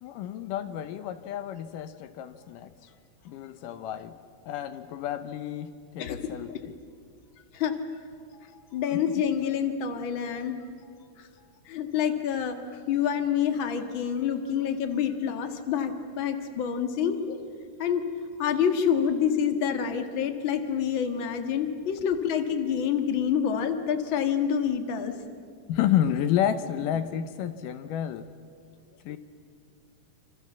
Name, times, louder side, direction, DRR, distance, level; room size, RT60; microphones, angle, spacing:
voice 1, 0.0-2.9 3.3-4.2 4.5-6.7 25.7-28.3 29.0-29.2, left 10 dB, 80° left, 11 dB, 2.4 m, -30 dB
voice 2, 8.7-10.6 11.2-11.3 11.7-17.4 17.8-18.0 18.4-25.2, left 8 dB, 45° left, 6 dB, 2.1 m, -27 dB
27.0 x 27.0 x 7.4 m, 2.2 s
omnidirectional pair, 3.8 m